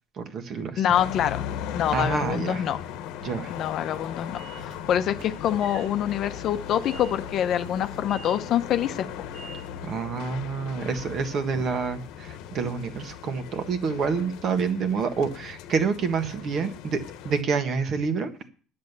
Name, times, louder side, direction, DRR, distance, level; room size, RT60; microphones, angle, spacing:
voice 1, 0.2-0.8 1.9-2.6 3.2-3.5 9.8-18.3, right 5 dB, 40° right, 7 dB, 1.6 m, -28 dB
voice 2, 0.7-1.4 1.7-2.8 3.5-9.1, left 10 dB, 45° left, 10 dB, 0.8 m, -26 dB
sound 1, 0.9-17.4, left 9 dB, 75° left, 1.1 m, -38 dB
Train / Sliding door, 3.5-10.0, right 4 dB, 85° right, 4.5 m, -47 dB
10.5 x 7.8 x 6.8 m, 0.42 s
cardioid pair, 140°, 0 cm